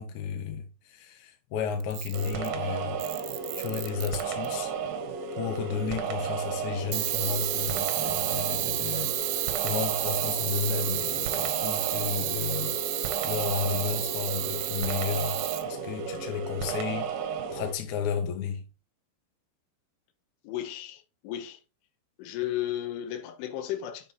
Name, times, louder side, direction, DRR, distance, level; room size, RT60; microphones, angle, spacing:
voice 1, 0.0-3.0 3.6-4.7 5.4-9.1 9.6-12.7 13.2-17.1 17.5-18.7, left 7 dB, 65° left, 2.0 m, -33 dB
Camera, 1.8-2.6 3.0-4.5 6.9-15.6, right 16 dB, 90° right, 3.2 m, -31 dB
sound 1, 2.1-17.7, right 6 dB, 65° right, 2.4 m, -33 dB
voice 2, 20.4-21.6 22.2-24.1, left 12 dB, 85° left, 3.5 m, -34 dB
7.5 x 6.3 x 4.0 m
omnidirectional pair, 5.6 m